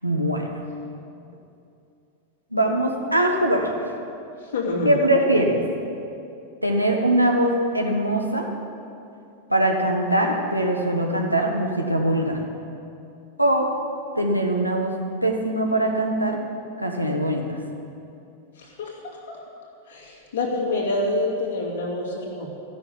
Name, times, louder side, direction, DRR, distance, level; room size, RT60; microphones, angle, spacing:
voice 1, 0.0-0.6 2.5-3.7 4.8-5.6 6.6-8.5 9.5-12.4 13.4-13.7 14.1-14.9 15.2-16.4 16.8-17.6, right 1 dB, 90° right, 0 dB, 1.4 m, -22 dB
voice 2, 4.4-5.0 18.6-19.4 19.9-22.5, left 2 dB, 60° left, -2 dB, 2.6 m, -27 dB
14.5 x 6.9 x 9.9 m, 2.6 s
figure-of-eight pair, 90°, 0 cm